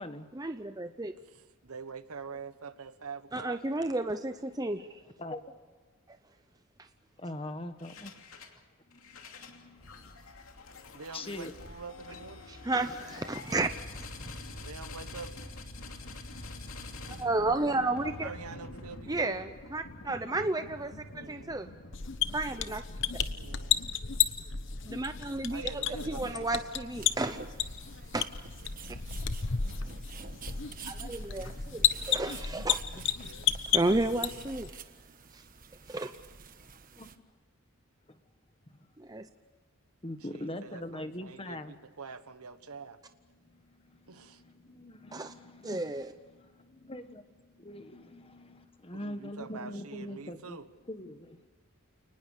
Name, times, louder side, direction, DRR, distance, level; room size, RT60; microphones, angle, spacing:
voice 1, 0.3-1.1 3.3-4.9 12.5-14.1 17.1-18.3 19.1-21.7 22.3-22.8 24.8-27.4 28.1-28.3 30.8-32.8 33.7-34.8 35.3-35.4 35.9-36.1 39.0-39.3 45.1-45.3 45.6-46.1, right 2 dB, 15° right, 8 dB, 0.7 m, -32 dB
voice 2, 1.3-3.6 10.9-12.5 14.6-15.3 18.2-19.4 21.1-21.6 23.3-23.9 25.5-26.7 29.4-30.0 40.3-43.0 44.1-44.4 48.9-50.7, right 4 dB, 90° right, 11 dB, 1.3 m, -45 dB
voice 3, 5.2-5.5 7.2-8.1 8.8-10.7 11.1-11.5 14.2-14.4 15.0-17.5 17.8-19.3 19.9-20.4 21.1-21.3 23.6-23.8 24.9-25.0 26.1-26.3 29.4-29.6 30.8-31.0 31.3-31.5 32.1-32.2 36.9-37.1 38.1-38.2 38.7-38.8 40.0-41.8 43.3-50.6 50.9-51.5, left 1 dB, 25° left, 9 dB, 1.4 m, -44 dB
sound 1, 7.8-8.6 8.9-25.9, left 2 dB, 75° left, 2.7 m, -46 dB
sound 2, 21.9-34.7, left 8 dB, 55° left, 1.1 m, -33 dB
sound 3, 27.0-37.2, right 6 dB, 40° right, 1.4 m, -50 dB
29.5 x 20.0 x 6.7 m, 1.4 s
head